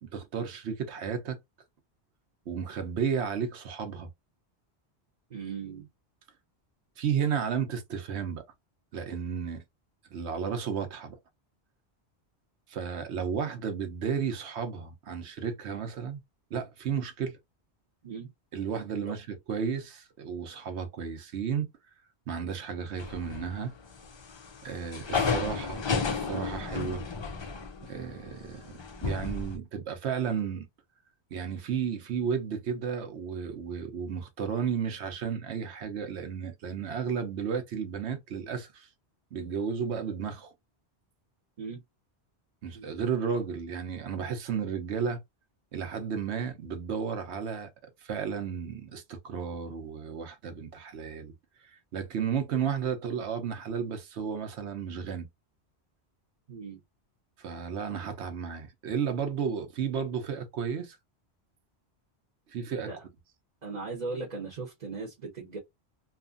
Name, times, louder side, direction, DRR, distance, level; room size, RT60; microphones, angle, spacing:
voice 1, 0.0-1.4 2.5-4.1 7.0-8.4 8.9-9.6 10.1-11.2 12.7-16.2 16.5-17.4 18.5-21.7 22.3-23.7 24.6-25.8 26.1-27.0 27.8-28.7 29.0-30.7 31.3-38.9 39.3-40.5 42.6-45.2 45.7-47.7 48.0-51.3 51.9-55.3 57.4-61.0 62.5-62.9, right 7 dB, 80° right, 1.0 m, -33 dB
voice 2, 5.3-5.9 18.0-18.3 19.1-19.2 41.6-41.8 42.7-42.9 56.5-56.8 62.9-63.0 63.6-65.6, right 4 dB, 45° right, 0.9 m, -38 dB
sound 1, 23.0-23.7 24.0-29.6, left 5 dB, 45° left, 0.3 m, -32 dB
2.8 x 2.5 x 2.4 m
omnidirectional pair, 1.1 m